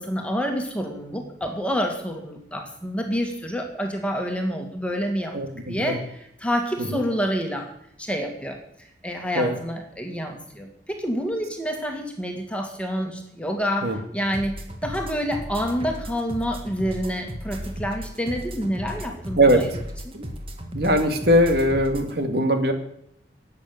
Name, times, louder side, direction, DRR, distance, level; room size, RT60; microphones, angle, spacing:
voice 1, 0.0-5.4 5.7-6.0 6.4-7.7 8.0-8.6 9.0-19.7, equal, 5° left, 3 dB, 2.1 m, -28 dB
voice 2, 5.3-6.0 6.9-7.0 9.3-9.6 13.8-14.0 19.4-19.6 20.1-20.3 20.7-22.7, equal, 60° right, 6 dB, 2.3 m, -20 dB
sound 1, 14.3-22.1, equal, 30° right, 1.8 m, -35 dB
12.0 x 8.7 x 9.6 m, 0.74 s
head